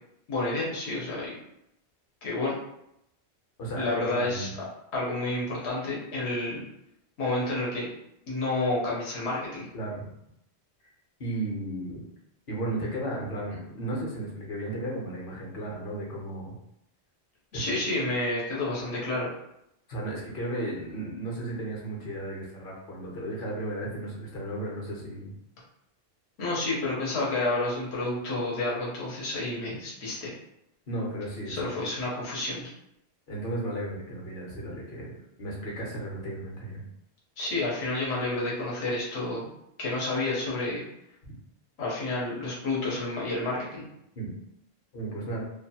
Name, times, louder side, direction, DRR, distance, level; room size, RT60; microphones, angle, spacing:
voice 1, 0.3-1.4 2.2-2.6 3.8-4.6 4.9-6.6 7.2-7.9 8.3-9.7 17.5-19.3 26.4-30.3 31.5-32.7 37.4-39.5 39.8-40.8 41.8-43.9, left 2 dB, 85° left, -6 dB, 1.1 m, -30 dB
voice 2, 3.6-4.5 9.7-10.1 11.2-12.0 12.5-16.5 17.5-17.6 19.9-25.3 29.6-29.7 30.9-31.7 33.3-35.1 35.4-36.8 44.2-44.3 44.9-45.4, right 1 dB, 55° left, -3 dB, 0.9 m, -34 dB
2.6 x 2.2 x 2.7 m, 0.80 s
omnidirectional pair, 1.1 m